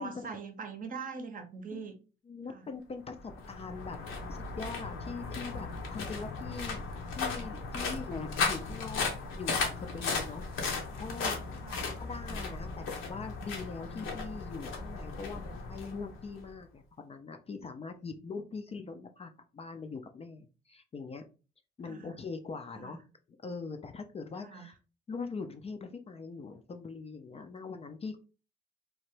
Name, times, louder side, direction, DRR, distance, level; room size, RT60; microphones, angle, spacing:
voice 1, 0.0-2.0 2.5-2.6 7.8-8.0 11.6-11.9 21.9-22.1 22.8-23.0 24.4-24.7, right 5 dB, 45° right, 6 dB, 0.7 m, -42 dB
voice 2, 2.3-4.0 4.3-6.8 7.2-9.1 9.3-11.6 12.0-21.2 21.8-23.0 23.4-24.7 25.1-28.2, left 4 dB, 30° left, 6 dB, 0.4 m, -42 dB
sound 1, 3.1-16.5, left 4 dB, 80° left, 0.9 m, -36 dB
2.9 x 2.1 x 3.1 m, 0.34 s
cardioid pair, 90°, 20 cm